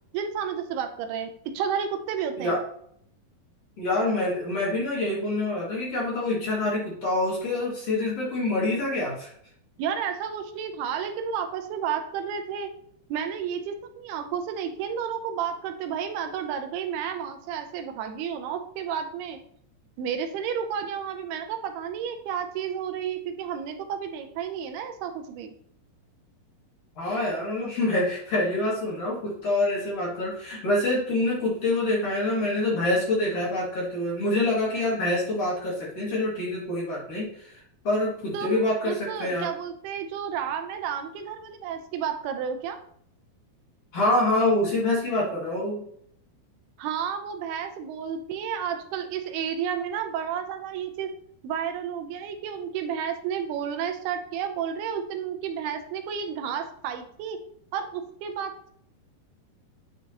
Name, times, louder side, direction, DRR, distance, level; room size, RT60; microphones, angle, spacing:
voice 1, 0.1-2.6 9.8-12.7 13.1-19.4 20.0-25.5 38.3-42.8 46.8-51.1 51.4-57.4 57.7-58.7, right 8 dB, 80° right, 7 dB, 2.7 m, -31 dB
voice 2, 3.8-9.3 27.0-39.5 43.9-45.8, left 2 dB, 45° left, -5 dB, 2.7 m, -26 dB
9.3 x 4.9 x 2.8 m, 0.66 s
omnidirectional pair, 4.6 m